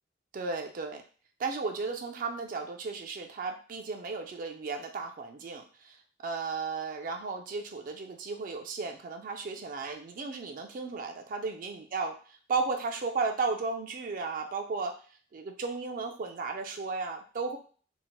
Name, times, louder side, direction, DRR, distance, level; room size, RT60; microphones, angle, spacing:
voice 1, 0.3-1.0 1.4-12.1 12.5-14.9 15.3-17.6, right 4 dB, 45° right, 4 dB, 0.3 m, -34 dB
2.8 x 2.0 x 2.9 m, 0.41 s
head